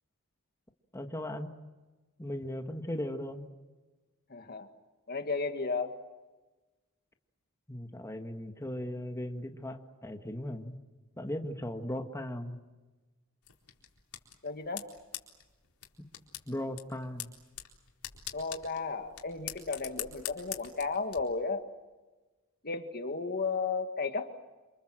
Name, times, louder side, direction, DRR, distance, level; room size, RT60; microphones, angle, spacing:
voice 1, 0.9-1.5 2.2-3.5 7.7-10.8 11.2-12.6 16.5-17.3, left 1 dB, 15° left, 4 dB, 1.8 m, -37 dB
voice 2, 4.3-4.7 5.1-6.0 14.4-14.9 18.3-21.7 22.6-24.3, left 4 dB, 45° left, 7 dB, 1.9 m, -34 dB
sound 1, 13.4-21.2, left 12 dB, 90° left, 4.2 m, -45 dB
28.0 x 27.5 x 7.7 m, 1.2 s
head